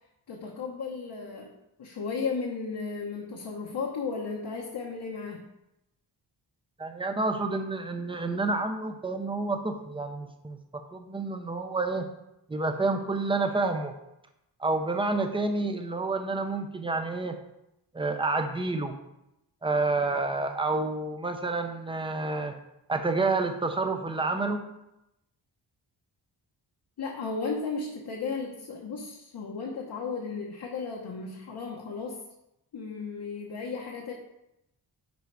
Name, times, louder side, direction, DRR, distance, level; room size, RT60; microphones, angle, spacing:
voice 1, 0.3-1.5 1.8-5.5 27.0-32.2 32.7-34.1, left 4 dB, 65° left, -2 dB, 1.1 m, -34 dB
voice 2, 6.8-12.1 12.5-13.9 14.6-17.4 17.9-18.9 19.6-22.6 22.9-24.6, right 3 dB, 10° right, 6 dB, 0.6 m, -29 dB
10.5 x 3.9 x 4.7 m, 0.87 s
wide cardioid pair, 170°, 43 cm